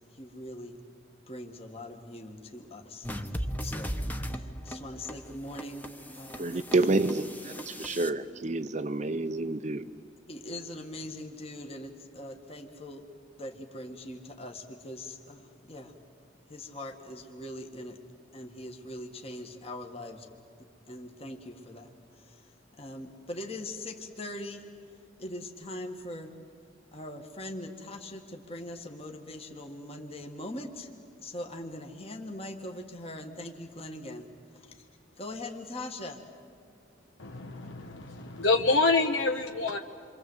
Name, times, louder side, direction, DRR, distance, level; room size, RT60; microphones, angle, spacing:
voice 1, 0.1-0.8 1.3-4.0 4.3-5.9 6.1-6.7 10.3-13.0 13.4-15.9 16.5-18.0 18.3-20.3 20.9-24.7 25.2-26.3 26.9-30.9 31.2-34.3 34.5-34.9 35.2-36.3, left 1 dB, 30° left, 1.7 m, -41 dB
sound 1, 3.0-8.1, equal, 10° left, 1.1 m, -37 dB
voice 2, 6.4-9.9, right 2 dB, 40° right, 0.6 m, -29 dB
voice 3, 37.2-39.8, left 3 dB, 75° left, 1.1 m, -26 dB
28.0 x 25.0 x 8.0 m
head